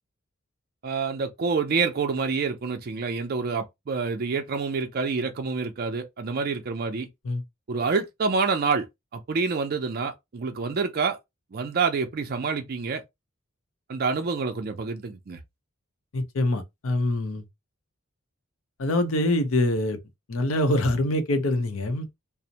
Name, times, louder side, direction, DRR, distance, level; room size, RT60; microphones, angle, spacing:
voice 1, 0.8-7.1 7.7-8.9 9.1-11.2 11.5-13.0 13.9-15.4, right 4 dB, 45° right, 0.4 m, -27 dB
voice 2, 16.1-17.4 18.8-20.0 20.3-22.1, left 1 dB, 70° left, 0.6 m, -24 dB
2.5 x 2.0 x 2.8 m
head